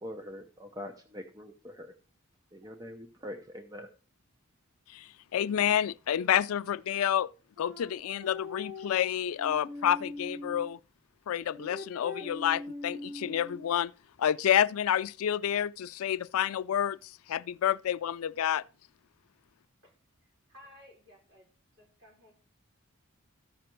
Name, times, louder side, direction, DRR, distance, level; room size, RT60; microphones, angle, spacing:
voice 1, 0.0-1.9 2.5-3.9, left 1 dB, 15° right, 0.8 m, -43 dB
voice 2, 4.9-7.3 7.6-10.8 11.3-13.9 14.2-18.6, left 10 dB, 80° left, 0.3 m, -29 dB
sound 1, 7.6-10.7 11.4-13.7, left 2 dB, 35° right, 1.8 m, -42 dB
voice 3, 20.2-22.3, left 1 dB, 60° right, 5.1 m, -57 dB
13.5 x 5.9 x 4.5 m
head